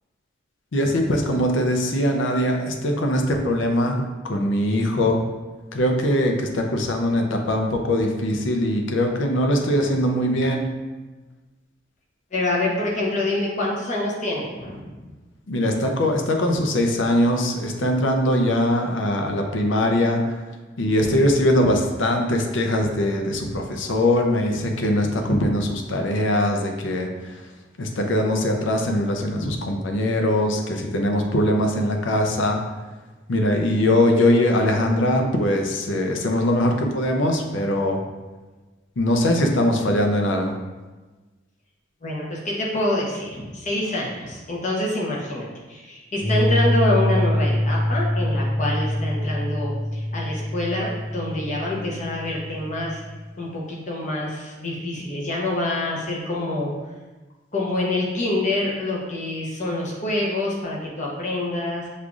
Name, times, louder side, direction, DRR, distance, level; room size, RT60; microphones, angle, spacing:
voice 1, 0.7-5.2 5.7-10.7 15.5-20.2 20.8-27.5 27.8-32.6 33.3-38.0 39.0-40.6, left 1 dB, 70° left, 3 dB, 0.5 m, -21 dB
voice 2, 12.3-15.1 21.0-21.2 25.2-25.3 42.0-53.0 53.4-56.7 57.5-61.9, left 1 dB, 35° left, -3 dB, 0.8 m, -26 dB
sound 1, 46.2-53.3, left 1 dB, 50° left, 1.5 m, -25 dB
6.3 x 2.5 x 2.4 m, 1.2 s
head